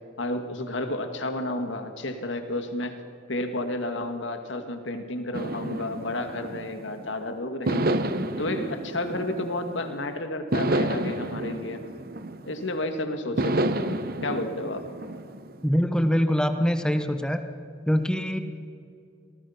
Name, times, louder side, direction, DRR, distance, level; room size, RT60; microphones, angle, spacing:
voice 1, 0.2-2.9 3.3-11.8 12.5-14.8, left 1 dB, 75° left, 6 dB, 2.1 m, -31 dB
sound 1, 5.3-7.1 7.7-9.9 10.5-12.8 13.4-15.6, right 1 dB, 50° right, 1.0 m, -30 dB
voice 2, 15.6-17.4 17.9-18.4, equal, 5° left, 8 dB, 1.0 m, -23 dB
26.5 x 19.0 x 5.9 m, 2.4 s
head